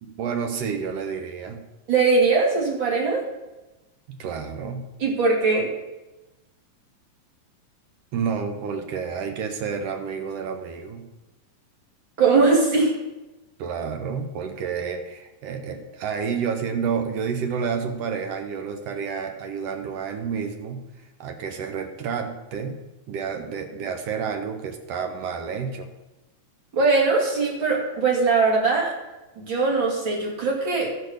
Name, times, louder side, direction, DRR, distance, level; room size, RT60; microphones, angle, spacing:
voice 1, 0.0-1.6 4.1-4.9 8.1-11.1 13.6-20.9 21.2-22.8 23.1-25.9, right 6 dB, 70° right, 6 dB, 1.5 m, -30 dB
voice 2, 1.9-3.2 5.0-5.7 12.2-12.9 26.7-28.9 29.4-30.9, right 4 dB, 40° right, -2 dB, 2.7 m, -20 dB
14.0 x 4.7 x 6.5 m, 1.0 s
omnidirectional pair, 3.9 m